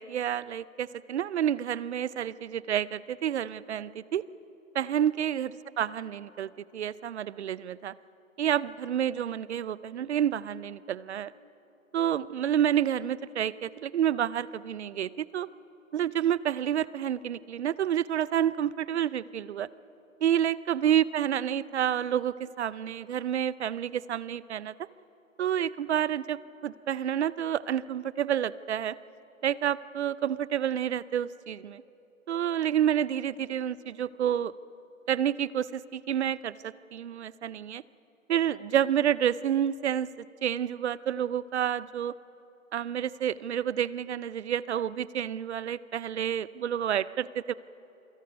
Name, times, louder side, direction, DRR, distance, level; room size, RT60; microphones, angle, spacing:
voice 1, 0.0-4.2 4.7-5.5 5.8-7.9 8.4-11.3 11.9-15.5 15.9-19.7 20.2-24.7 25.4-29.0 29.4-31.8 32.3-34.5 35.1-37.8 38.3-42.1 42.7-47.5, right 10 dB, 55° right, 19 dB, 0.7 m, -29 dB
27.5 x 24.5 x 5.3 m, 3.0 s
figure-of-eight pair, 130°, 41 cm